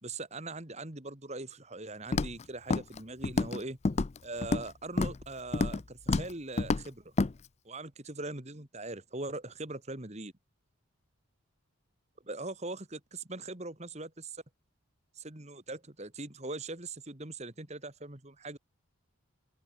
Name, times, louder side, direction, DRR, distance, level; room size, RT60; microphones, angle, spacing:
voice 1, 0.0-3.8 4.2-7.1 7.6-10.3 12.2-14.4 15.2-18.6, right 2 dB, 30° right, 2.1 m, -41 dB
Walk footsteps, 2.1-2.4 2.7-3.0 3.2-3.6 3.8-4.7 5.0-5.2 5.5-5.8 6.1-6.3 6.6-6.8 7.2-7.3, left 3 dB, 30° left, 0.4 m, -28 dB
open air
head